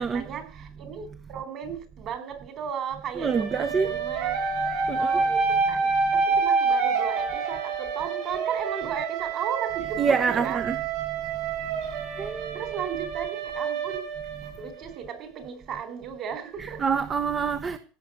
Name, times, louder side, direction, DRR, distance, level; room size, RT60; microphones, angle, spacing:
voice 1, 0.0-4.3 4.9-5.4 5.7-10.6 12.2-12.3 12.5-14.1 14.6-16.8, right 7 dB, 40° right, 4.2 m, -35 dB
voice 2, 3.2-3.9 4.9-5.1 10.0-10.8 12.2-12.7 16.6-17.8, right 5 dB, 25° right, 1.0 m, -26 dB
sound 1, 3.2-15.0, right 5 dB, 60° right, 7.4 m, -28 dB
16.5 x 6.9 x 8.1 m
supercardioid pair, 130°, 0 cm